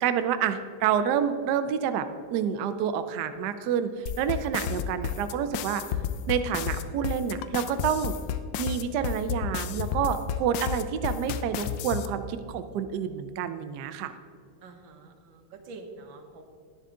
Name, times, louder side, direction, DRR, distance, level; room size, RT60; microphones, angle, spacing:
voice 1, 0.0-5.8 6.3-8.2 8.6-14.1, right 8 dB, 80° right, 9 dB, 0.9 m, -28 dB
sound 1, 4.1-12.1, left 9 dB, 75° left, 1.1 m, -31 dB
voice 2, 14.6-16.4, right 3 dB, 65° right, 5 dB, 1.7 m, -46 dB
10.5 x 10.0 x 3.7 m, 2.1 s
omnidirectional pair, 2.4 m